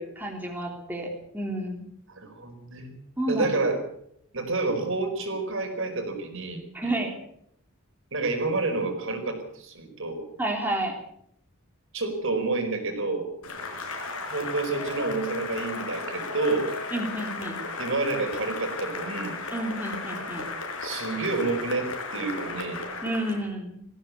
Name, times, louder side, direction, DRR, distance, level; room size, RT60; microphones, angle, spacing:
voice 1, 0.0-1.9 3.2-3.5 6.7-7.1 10.4-10.9 16.9-17.6 19.5-20.4 23.0-23.8, right 1 dB, 10° right, 1 dB, 3.3 m, -30 dB
voice 2, 2.1-2.9 3.3-3.8 4.3-6.9 8.1-10.2 11.9-13.3 14.3-16.7 17.8-19.4 20.8-22.8, right 3 dB, 60° right, 5 dB, 4.9 m, -29 dB
Cheering / Applause, 13.4-23.5, left 3 dB, 80° left, 4.9 m, -35 dB
20.0 x 15.5 x 8.4 m, 0.72 s
head